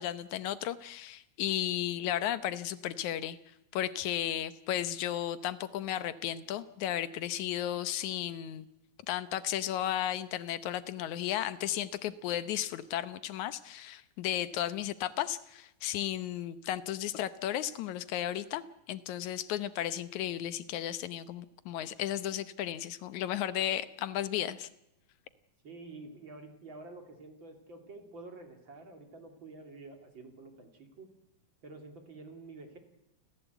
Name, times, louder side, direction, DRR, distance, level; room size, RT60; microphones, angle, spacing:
voice 1, 0.0-3.4 3.7-8.7 9.1-24.7, left 12 dB, 80° left, 14 dB, 2.3 m, -34 dB
voice 2, 25.6-31.1 31.6-32.8, right 3 dB, 40° right, 5 dB, 3.4 m, -49 dB
29.0 x 15.0 x 8.2 m, 0.89 s
omnidirectional pair, 3.3 m